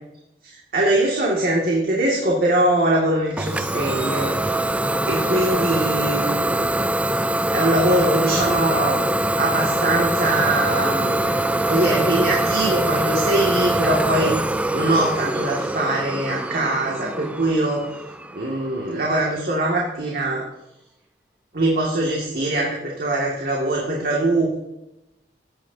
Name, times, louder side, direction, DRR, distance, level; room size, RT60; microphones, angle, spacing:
voice 1, 0.4-4.3 5.1-6.8 7.5-9.1 9.4-11.4 11.7-14.4 14.7-17.9 18.3-20.4 21.5-24.6, right 1 dB, 55° right, -2 dB, 2.2 m, -22 dB
Idling / Domestic sounds home sounds, 3.4-18.9, right 1 dB, 10° right, 0.4 m, -23 dB
15.5 x 10.5 x 2.8 m, 0.87 s
head